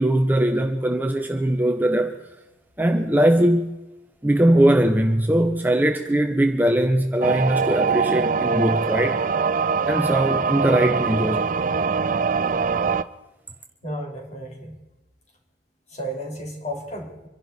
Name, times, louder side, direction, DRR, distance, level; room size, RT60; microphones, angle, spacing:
voice 1, 0.0-2.1 2.8-3.8 4.2-9.2 9.9-11.5, right 1 dB, 10° right, 0.8 m, -20 dB
sound 1, 7.2-13.0, right 5 dB, 45° right, 0.5 m, -23 dB
voice 2, 13.8-14.8 15.9-17.3, equal, 35° left, 3.7 m, -33 dB
26.0 x 11.5 x 4.2 m
head